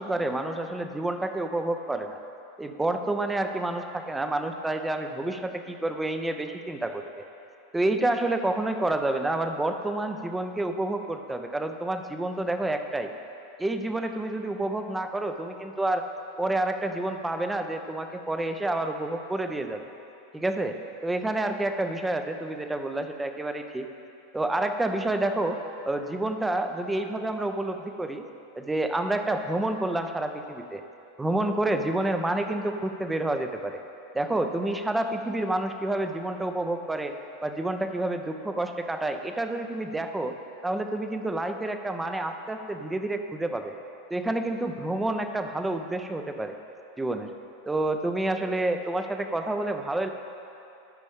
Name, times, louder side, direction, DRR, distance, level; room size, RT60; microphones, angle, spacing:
voice 1, 0.0-2.2 2.6-7.2 7.7-13.1 13.6-16.1 16.4-19.9 20.3-20.8 21.0-23.9 24.3-25.6 25.8-28.2 28.5-30.8 31.2-33.8 34.1-37.2 37.4-40.3 40.6-43.7 44.1-46.6 47.0-47.3 47.7-50.1, right 2 dB, 10° right, 6 dB, 0.6 m, -29 dB
12.5 x 5.2 x 3.6 m, 2.7 s
hypercardioid pair, 105°, 0 cm